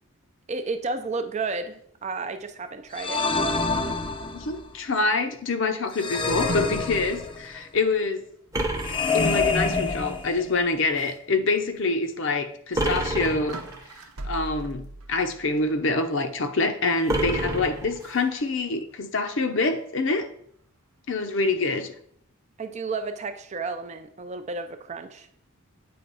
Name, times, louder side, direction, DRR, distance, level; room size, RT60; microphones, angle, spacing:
voice 1, 0.5-3.3 22.6-25.3, right 3 dB, 30° right, 9 dB, 0.4 m, -32 dB
sound 1, 2.9-4.6 5.9-7.6 8.8-10.7, left 4 dB, 25° left, 0.5 m, -27 dB
voice 2, 4.3-8.3 9.1-13.6 14.3-20.3 21.1-21.9, left 3 dB, 60° left, 8 dB, 0.7 m, -26 dB
sound 2, 6.0-7.5 8.0-8.1 8.5-8.6 10.2-10.3 10.9-11.2 11.7-11.8 12.8-16.0 16.9-17.4 18.0-18.3, right 2 dB, 85° right, 0.8 m, -40 dB
sound 3, 8.5-9.9 12.7-13.9 17.1-18.4, right 1 dB, 15° right, 0.8 m, -29 dB
8.6 x 3.4 x 5.4 m, 0.67 s
head